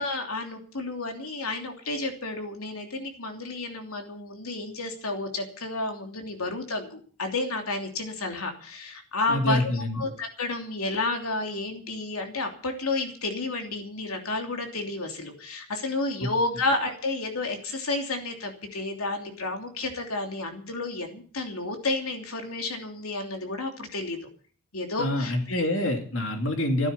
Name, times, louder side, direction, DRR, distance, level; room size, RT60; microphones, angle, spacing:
voice 1, 0.0-24.2 24.7-25.6, left 2 dB, 90° left, 4 dB, 3.1 m, -31 dB
voice 2, 9.3-10.0 25.0-26.9, left 1 dB, 60° left, 4 dB, 2.8 m, -26 dB
15.0 x 12.0 x 7.0 m, 0.43 s
head